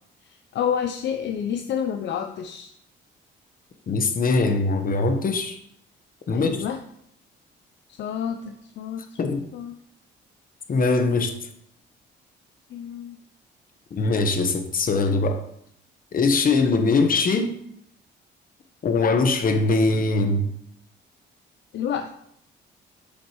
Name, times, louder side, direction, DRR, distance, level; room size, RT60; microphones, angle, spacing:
voice 1, 0.5-2.7 6.3-6.8 8.0-9.2 9.5-9.7 12.7-13.2 21.7-22.1, left 8 dB, 65° left, 7 dB, 0.5 m, -29 dB
voice 2, 3.9-5.6 6.3-6.6 9.2-9.5 10.7-11.3 13.9-15.4 16.1-17.5 18.8-20.5, left 3 dB, 45° left, 6 dB, 1.0 m, -21 dB
8.2 x 5.4 x 3.1 m, 0.72 s
cardioid pair, 90°, 20 cm